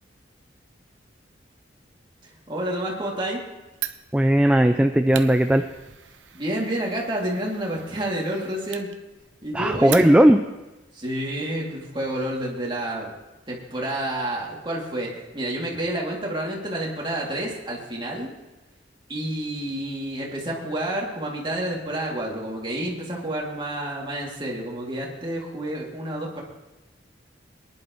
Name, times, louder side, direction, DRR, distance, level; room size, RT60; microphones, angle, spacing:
voice 1, 2.5-3.4 6.3-8.9 9.4-10.2 10.9-13.1 13.5-18.3 19.1-26.4, right 1 dB, 25° right, -3 dB, 2.7 m, -29 dB
Fire, 3.7-10.5, right 11 dB, 90° right, 0.8 m, -39 dB
voice 2, 4.1-5.6 9.5-10.4, right 1 dB, 5° right, 7 dB, 0.4 m, -17 dB
22.5 x 11.0 x 3.1 m, 1.1 s
head